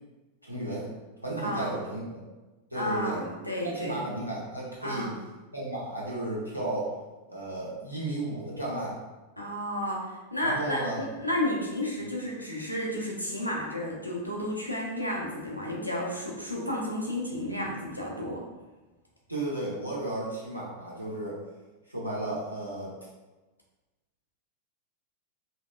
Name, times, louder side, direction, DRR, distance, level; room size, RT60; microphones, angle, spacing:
voice 1, 0.4-0.9 1.2-2.2 2.7-3.2 3.6-5.1 5.5-6.9 7.3-9.0 10.4-11.0 19.3-21.4 21.9-22.9, right 2 dB, 90° right, -6 dB, 1.1 m, -33 dB
voice 2, 1.4-1.8 2.7-4.1 4.8-5.2 9.4-18.4, left 1 dB, 90° left, -3 dB, 0.8 m, -32 dB
4.3 x 2.8 x 2.4 m, 1.2 s
figure-of-eight pair, 90°, 0 cm